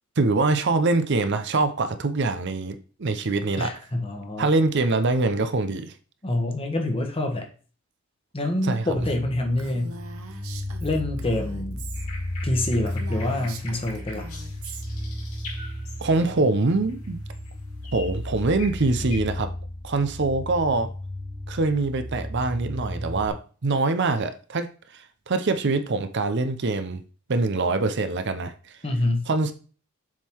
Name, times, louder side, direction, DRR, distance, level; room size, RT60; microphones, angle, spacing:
voice 1, 0.2-3.7 4.4-5.9 8.6-9.0 16.0-17.2 17.9-19.5 19.8-20.9 21.5-27.0 27.3-28.5 29.3-29.5, right 3 dB, 55° right, 0.6 m, -24 dB
voice 2, 3.6-4.5 6.2-7.5 8.3-10.0 10.8-11.8 12.4-14.2 28.8-29.3, left 1 dB, 25° left, 1.2 m, -26 dB
sound 1, 9.0-23.3, left 1 dB, 5° left, 0.9 m, -34 dB
Female speech woman speaking, 9.6-12.1 12.4-12.5 12.8-14.8, right 4 dB, 80° right, 0.9 m, -42 dB
sound 2, 11.9-16.4 16.9-17.5 17.8-19.2, left 3 dB, 85° left, 2.8 m, -43 dB
7.2 x 3.8 x 4.5 m
head